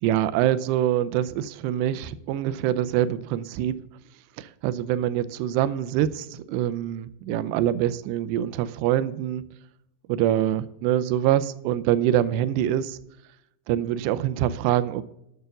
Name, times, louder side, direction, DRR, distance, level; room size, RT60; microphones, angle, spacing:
voice 1, 0.0-3.8 4.4-9.4 10.1-13.0 13.7-15.0, right 11 dB, 85° right, 2.6 m, -25 dB
9.0 x 6.8 x 7.7 m
omnidirectional pair, 4.9 m